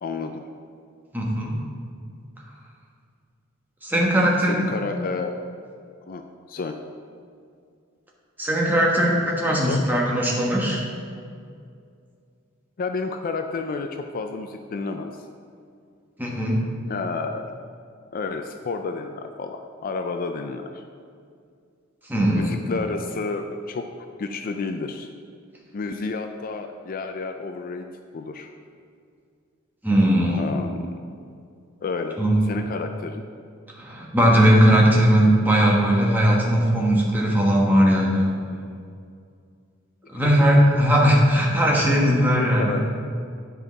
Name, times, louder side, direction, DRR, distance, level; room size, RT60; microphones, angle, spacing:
voice 1, 0.0-0.4 4.4-5.4 6.1-6.8 9.6-9.8 12.8-15.3 16.9-17.6 18.1-20.8 22.4-23.9 24.2-25.1 25.7-27.8 28.1-28.5 30.4-30.9 31.8-32.2 32.5-33.2 40.1-40.4 42.3-42.9, left 4 dB, 45° left, 6 dB, 0.4 m, -30 dB
voice 2, 1.1-1.5 3.8-4.7 8.4-10.9 16.2-16.6 22.1-22.5 29.8-30.4 32.2-32.5 33.8-38.3 40.1-42.9, equal, 10° right, -3 dB, 1.2 m, -19 dB
9.9 x 5.3 x 4.0 m, 2.3 s
head